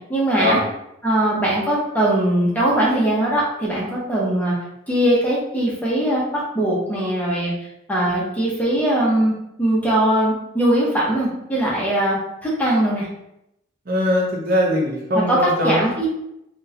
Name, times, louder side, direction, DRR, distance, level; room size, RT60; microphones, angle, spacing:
voice 1, 0.1-0.6 1.0-4.5 4.9-7.5 7.9-9.3 9.6-12.2 12.4-13.1 15.1-15.4 15.6-16.1, right 1 dB, 10° left, -5 dB, 0.7 m, -20 dB
voice 2, 13.9-15.8, left 1 dB, 50° right, -2 dB, 0.7 m, -21 dB
3.8 x 2.3 x 2.7 m, 0.81 s
head